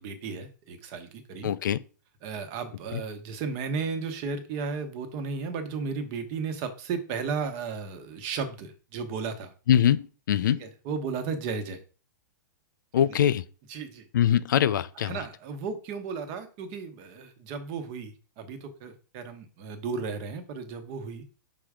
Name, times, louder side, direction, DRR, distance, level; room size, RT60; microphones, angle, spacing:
voice 1, 0.0-1.5 2.2-9.5 10.5-11.8 13.0-13.2 13.7-14.0 15.0-21.2, right 5 dB, 35° right, 1.1 m, -34 dB
voice 2, 1.4-1.8 2.9-3.0 9.7-10.6 12.9-13.4 14.1-15.2, left 10 dB, 80° left, 0.5 m, -23 dB
6.0 x 3.6 x 4.9 m
hypercardioid pair, 160°, 10 cm